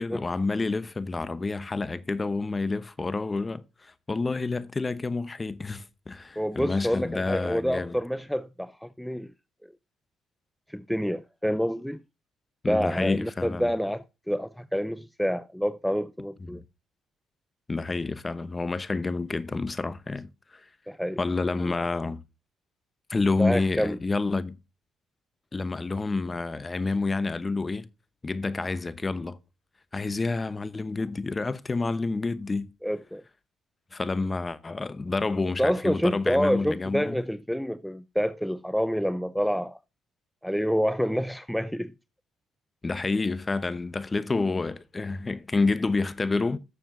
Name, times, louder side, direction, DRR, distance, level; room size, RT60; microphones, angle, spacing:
voice 1, 0.0-8.0 12.6-13.7 16.4-16.6 17.7-20.6 21.2-22.2 23.1-24.5 25.5-27.9 28.2-29.4 29.9-32.7 33.9-37.2 42.8-46.6, left 3 dB, 25° left, 0.8 m, -29 dB
voice 2, 6.4-9.3 10.7-12.0 12.7-16.6 20.9-21.2 21.6-21.7 23.4-24.0 32.8-33.2 35.6-39.8 40.4-41.9, equal, ahead, 0.5 m, -28 dB
13.0 x 6.9 x 2.6 m
cardioid pair, 80°, 0 cm